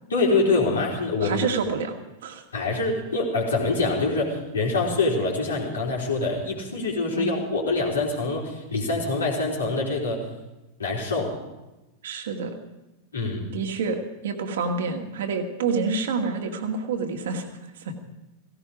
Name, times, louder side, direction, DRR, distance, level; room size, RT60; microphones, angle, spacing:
voice 1, 0.1-1.4 2.5-10.2 10.8-11.3 13.1-13.5, left 3 dB, 70° left, -2 dB, 4.1 m, -25 dB
voice 2, 1.2-2.4 7.1-7.5 12.0-12.5 13.5-17.5 17.8-17.9, right 4 dB, 60° right, 4 dB, 2.1 m, -28 dB
16.5 x 16.5 x 5.1 m, 1.0 s
figure-of-eight pair, 90°, 0 cm